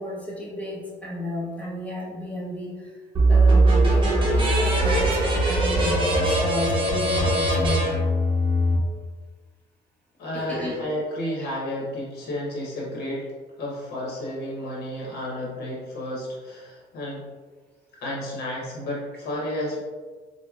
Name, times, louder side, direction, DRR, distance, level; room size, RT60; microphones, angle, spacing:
voice 1, 0.0-2.9 3.3-7.9 10.3-10.8 11.4-11.5, left 1 dB, 10° left, -5 dB, 0.9 m, -32 dB
sound 1, 3.1-8.8, right 1 dB, 30° right, 0.9 m, -20 dB
voice 2, 10.2-13.3 13.6-17.2 18.0-19.8, left 1 dB, 70° left, -4 dB, 0.9 m, -31 dB
4.6 x 2.1 x 2.3 m, 1.4 s
cardioid pair, 110°, 17 cm